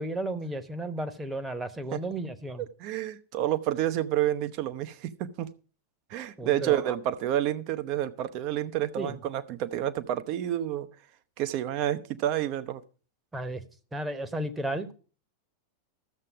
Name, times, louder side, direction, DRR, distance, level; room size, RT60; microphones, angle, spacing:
voice 1, 0.0-2.7 6.4-7.0 9.0-9.2 13.3-13.6 13.9-14.9, right 1 dB, 10° right, 1.1 m, -33 dB
voice 2, 2.6-5.5 6.1-10.9 11.4-12.8, right 12 dB, 40° right, 0.8 m, -29 dB
13.0 x 7.6 x 4.9 m
figure-of-eight pair, 90°, 0 cm